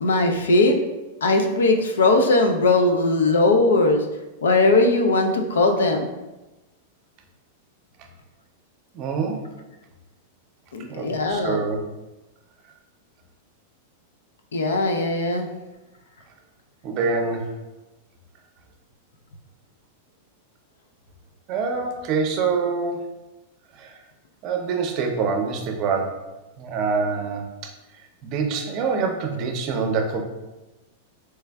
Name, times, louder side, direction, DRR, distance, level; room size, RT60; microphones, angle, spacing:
voice 1, 0.0-0.8 1.2-4.1 4.4-6.1 10.7-11.6 14.5-15.5, left 2 dB, 80° left, 5 dB, 0.4 m, -19 dB
voice 2, 8.9-9.4 10.9-11.8 16.8-17.5 21.5-23.0 23.8-24.0 24.4-26.2 26.6-27.7 28.2-30.2, right 5 dB, 45° right, 4 dB, 0.5 m, -25 dB
3.2 x 3.2 x 2.2 m, 1.0 s
hypercardioid pair, 105°, 0 cm